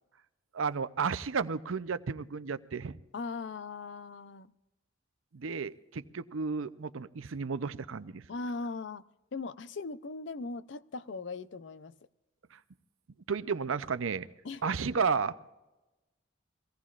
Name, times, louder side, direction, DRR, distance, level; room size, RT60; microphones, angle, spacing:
voice 1, 0.5-3.0 5.3-8.3 12.5-12.6 13.3-14.3 14.6-15.3, right 5 dB, 90° right, 14 dB, 0.6 m, -32 dB
voice 2, 3.1-4.5 8.3-9.1 9.3-11.9 14.4-14.6, left 3 dB, 65° left, 14 dB, 0.5 m, -39 dB
24.0 x 17.0 x 2.4 m, 1.1 s
head